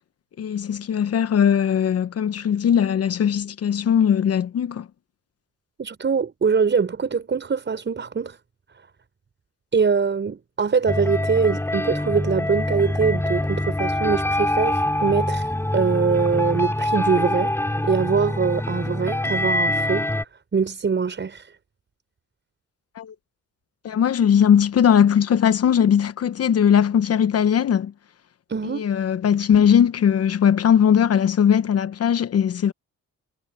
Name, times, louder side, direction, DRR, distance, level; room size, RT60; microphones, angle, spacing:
voice 1, 0.4-4.8 23.0-23.1 23.8-27.9 28.6-32.7, left 8 dB, 55° left, 1.0 m, -19 dB
voice 2, 5.8-8.4 9.7-17.5 17.8-20.1 20.5-21.5 28.5-28.8, right 5 dB, 40° right, 6.1 m, -23 dB
sound 1, 10.9-20.2, left 1 dB, 10° left, 3.6 m, -24 dB
cardioid pair, 90°, 30 cm